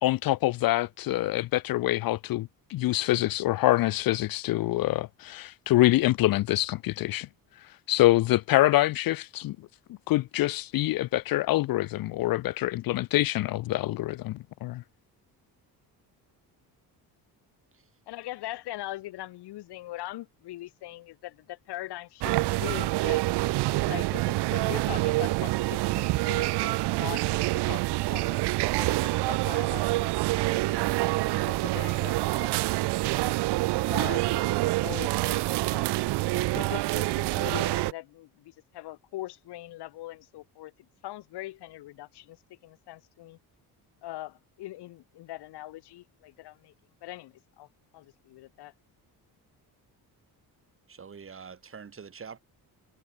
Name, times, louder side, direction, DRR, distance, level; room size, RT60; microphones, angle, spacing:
voice 1, 0.0-7.3 7.9-9.6 10.1-14.8, left 16 dB, 60° left, 0.6 m, -25 dB
voice 2, 18.1-23.2 23.8-31.0 31.3-33.3 33.8-35.9 36.3-40.7 41.0-42.4 42.6-43.4 44.0-46.7 47.0-47.7 47.9-48.7, left 16 dB, 85° left, 3.2 m, -41 dB
sound 1, 22.2-37.9, right 19 dB, 90° right, 1.0 m, -26 dB
voice 3, 50.9-52.4, right 6 dB, 35° right, 5.6 m, -44 dB
cardioid pair, 125°, 39 cm